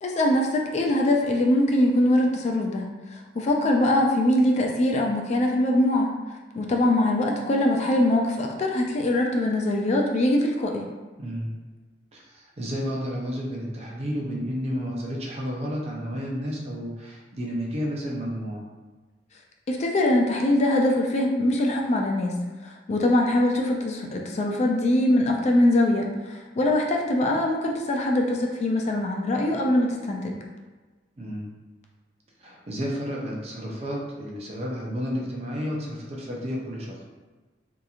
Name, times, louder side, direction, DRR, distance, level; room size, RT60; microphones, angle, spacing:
voice 1, 0.0-2.9 3.4-6.1 6.5-10.8 19.7-22.3 22.6-30.4, left 1 dB, 40° left, 1 dB, 0.3 m, -22 dB
voice 2, 11.2-11.5 12.1-18.6 31.2-31.5 32.4-37.0, equal, 35° right, -2 dB, 0.5 m, -31 dB
2.8 x 2.5 x 2.4 m, 1.3 s
head